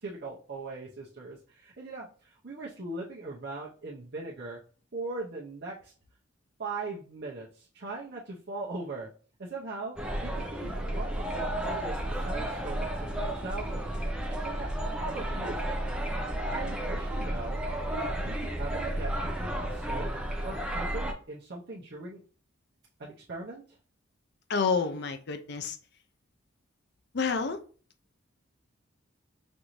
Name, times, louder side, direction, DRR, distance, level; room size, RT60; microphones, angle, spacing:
voice 1, 0.0-4.6 4.9-5.9 6.6-9.1 9.4-9.9 10.2-12.0 12.2-13.9 14.4-14.7 15.0-15.6 16.5-17.6 17.9-20.1 20.4-22.2 23.0-23.6, right 3 dB, 55° right, 0.7 m, -39 dB
sound 1, 10.0-21.1, right 1 dB, 5° right, 0.6 m, -32 dB
voice 2, 24.5-25.8 27.1-27.6, left 5 dB, 55° left, 0.5 m, -29 dB
5.3 x 2.6 x 3.0 m
head